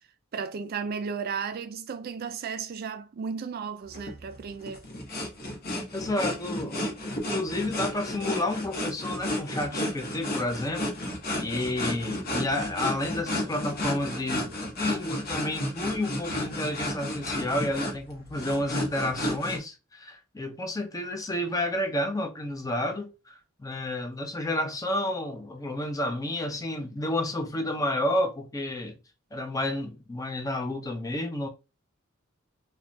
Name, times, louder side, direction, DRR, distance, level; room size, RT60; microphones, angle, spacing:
voice 1, 0.3-4.8, right 6 dB, 45° right, 0.3 m, -34 dB
sound 1, 3.9-19.6, left 1 dB, 50° left, 0.9 m, -32 dB
voice 2, 5.9-7.0 7.3-10.9 11.4-29.0 29.3-31.5, left 1 dB, 15° left, 0.4 m, -30 dB
3.1 x 2.1 x 2.6 m
head